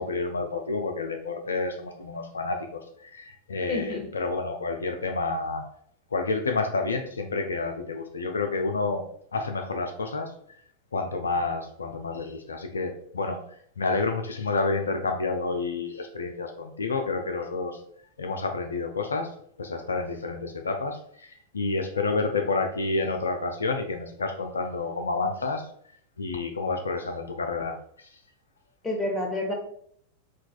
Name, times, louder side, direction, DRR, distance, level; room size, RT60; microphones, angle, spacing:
voice 1, 0.0-5.6 6.1-9.0 9.3-10.3 10.9-13.4 13.8-17.8 18.2-19.3 19.6-21.3 21.5-25.6 26.2-28.1, left 3 dB, 75° left, 4 dB, 0.3 m, -29 dB
voice 2, 3.7-4.1 28.8-29.5, left 1 dB, 15° left, 1 dB, 0.9 m, -29 dB
4.5 x 2.2 x 2.4 m, 0.64 s
figure-of-eight pair, 90°, 0 cm